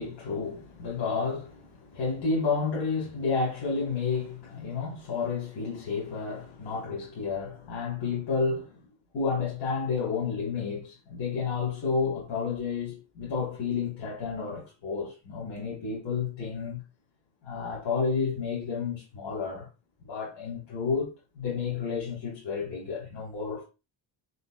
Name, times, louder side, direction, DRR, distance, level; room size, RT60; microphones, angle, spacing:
voice 1, 0.0-8.7 9.1-16.8 17.4-19.7 20.0-23.7, left 5 dB, 80° left, 2.0 m, -31 dB
4.9 x 3.8 x 2.4 m
cardioid pair, 110°, 41 cm